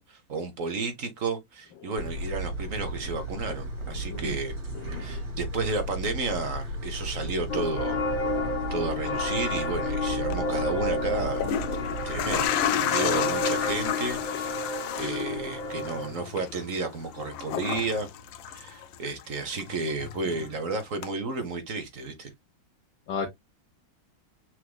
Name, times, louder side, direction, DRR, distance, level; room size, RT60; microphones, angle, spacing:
voice 1, 0.0-4.5 5.0-8.0 8.7-11.4 12.1-18.1 18.5-22.3, right 3 dB, 50° right, 1.2 m, -32 dB
sound 1, 2.0-12.5, right 1 dB, 80° right, 3.4 m, -35 dB
voice 2, 3.9-4.4 4.7-5.2 23.1-23.3, left 5 dB, 70° left, 1.6 m, -35 dB
sound 2, 7.5-16.1, left 3 dB, 35° left, 0.8 m, -31 dB
sound 3, 10.2-10.4 11.2-19.2 19.5-20.6 21.0-21.1, left 9 dB, 90° left, 1.4 m, -32 dB
6.1 x 3.3 x 2.2 m
omnidirectional pair, 2.0 m